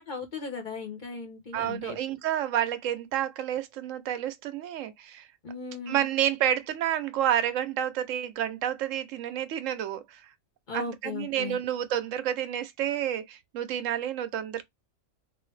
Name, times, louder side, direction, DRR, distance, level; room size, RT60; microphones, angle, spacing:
voice 1, 0.0-2.0 5.4-6.1 10.7-11.6, left 4 dB, 40° left, 1.0 m, -37 dB
voice 2, 1.5-5.3 5.9-10.2 10.7-14.6, right 10 dB, 90° right, 1.0 m, -29 dB
3.2 x 2.7 x 3.1 m
omnidirectional pair, 1.3 m